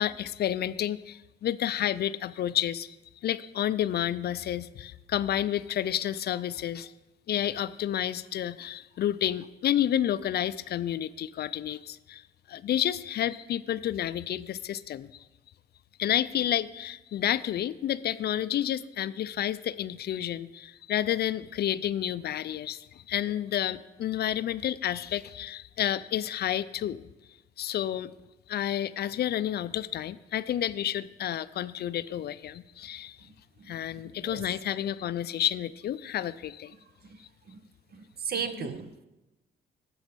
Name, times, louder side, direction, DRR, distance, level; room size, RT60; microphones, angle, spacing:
voice 1, 0.0-3.0 3.2-6.9 7.3-12.2 12.5-15.1 16.0-27.0 27.6-28.1 28.5-33.2 33.7-36.7 38.3-38.7, left 11 dB, 55° left, 16 dB, 0.4 m, -30 dB
voice 2, 37.9-38.9, right 7 dB, 50° right, 11 dB, 0.8 m, -34 dB
9.4 x 5.4 x 6.6 m, 1.0 s
cardioid pair, 90°, 20 cm